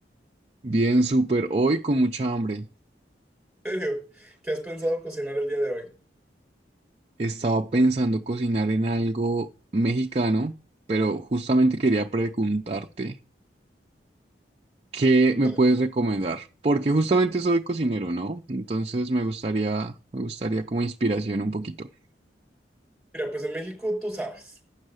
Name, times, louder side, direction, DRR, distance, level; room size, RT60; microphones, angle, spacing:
voice 1, 0.6-2.7 7.2-9.5 9.7-10.5 10.9-13.2 14.9-21.9, right 2 dB, 35° right, 0.5 m, -24 dB
voice 2, 3.6-5.9 15.4-15.6 23.1-24.6, right 1 dB, 5° right, 4.9 m, -30 dB
8.8 x 6.5 x 6.4 m
head